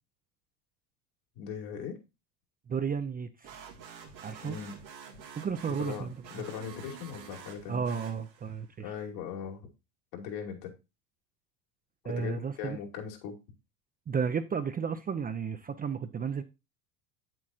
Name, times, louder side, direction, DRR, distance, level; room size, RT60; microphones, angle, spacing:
voice 1, 1.3-2.0 4.4-4.7 5.8-7.8 8.8-9.6 10.1-10.7 12.0-13.3, left 7 dB, 70° left, 2.6 m, -39 dB
voice 2, 2.7-3.6 4.2-4.6 5.4-6.4 7.7-8.9 12.0-12.8 14.1-16.4, right 6 dB, 20° right, 0.5 m, -33 dB
sound 1, 3.4-8.6, right 7 dB, 90° right, 1.9 m, -48 dB
8.5 x 7.6 x 2.4 m
hypercardioid pair, 80°, 49 cm